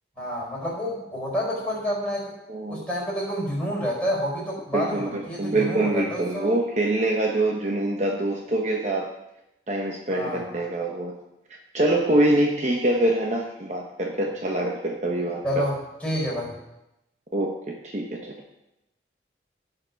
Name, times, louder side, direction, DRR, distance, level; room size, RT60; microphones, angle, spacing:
voice 1, 0.2-2.3 2.7-6.5 10.1-10.4 15.4-16.5, equal, 5° left, -5 dB, 4.5 m, -29 dB
voice 2, 2.5-2.9 4.7-9.1 9.7-11.2 11.7-15.4 17.3-18.3, right 1 dB, 40° right, 0 dB, 1.0 m, -25 dB
15.5 x 5.9 x 5.2 m, 0.91 s
head